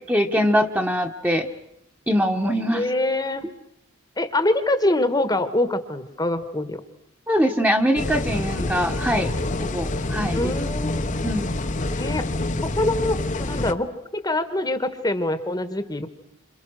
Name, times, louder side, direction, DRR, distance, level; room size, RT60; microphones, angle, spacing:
voice 1, 0.1-1.5 2.1-2.8 7.3-9.3 9.6-10.4 11.2-11.6, equal, 10° right, 4 dB, 1.4 m, -22 dB
voice 2, 2.7-3.5 4.2-6.8 10.3-11.0 12.0-12.3 12.6-16.1, left 1 dB, 20° left, 10 dB, 1.4 m, -24 dB
sound 1, 8.0-13.7, left 2 dB, 35° left, 1.0 m, -27 dB
28.5 x 27.0 x 6.4 m, 0.76 s
head